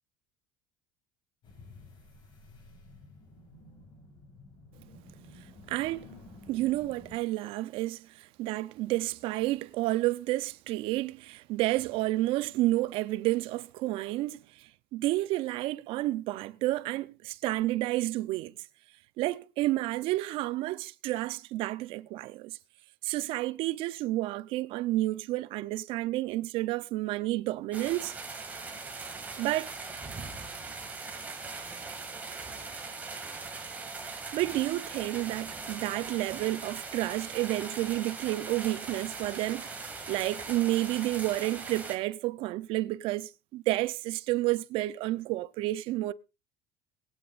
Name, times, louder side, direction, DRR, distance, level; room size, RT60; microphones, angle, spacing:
sound 1, 1.4-7.2, left 2 dB, 50° left, 5.5 m, -52 dB
voice 1, 5.7-6.1 6.5-18.5 19.2-22.6 23.0-28.2 29.4-29.7 34.3-46.1, right 17 dB, 60° right, 0.6 m, -30 dB
sound 2, 27.7-42.0, right 4 dB, 15° right, 2.2 m, -40 dB
23.0 x 8.7 x 2.5 m
supercardioid pair, 125°, 10 cm